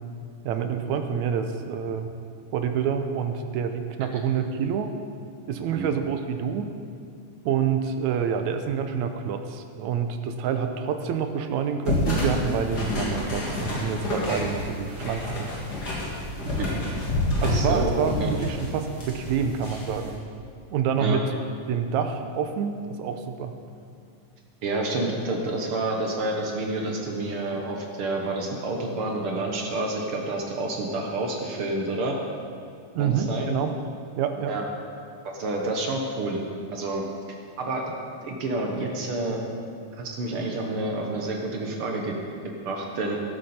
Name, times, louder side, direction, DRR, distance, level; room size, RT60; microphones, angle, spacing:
voice 1, 0.4-2.1 2.5-4.9 5.5-6.7 7.5-15.5 17.4-20.2 20.7-21.2 21.7-23.5 33.0-33.7 34.2-34.6, right 7 dB, 75° right, 7 dB, 1.8 m, -27 dB
sound 1, 11.8-20.1, left 1 dB, 30° left, 2.8 m, -29 dB
voice 2, 17.5-18.3 21.0-21.2 24.6-32.2 33.0-33.5 34.5-34.6 35.3-36.4 36.7-37.0 37.6-37.9 38.2-39.4 39.9-42.1 42.6-43.2, right 2 dB, 60° right, 0 dB, 1.5 m, -29 dB
14.0 x 12.0 x 4.3 m, 2.3 s
omnidirectional pair, 3.8 m